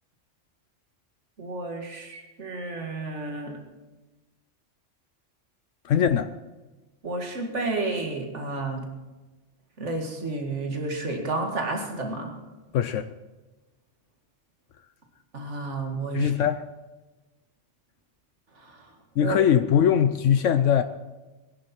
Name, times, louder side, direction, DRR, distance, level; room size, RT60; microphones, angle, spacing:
voice 1, 1.4-3.5 7.0-8.8 9.8-12.3 15.3-16.3 19.2-19.4, right 3 dB, 65° right, 2.4 m, -31 dB
voice 2, 5.8-6.3 12.7-13.1 16.1-16.7 19.2-20.8, left 9 dB, 80° left, 1.0 m, -21 dB
21.5 x 11.0 x 4.5 m
omnidirectional pair, 1.3 m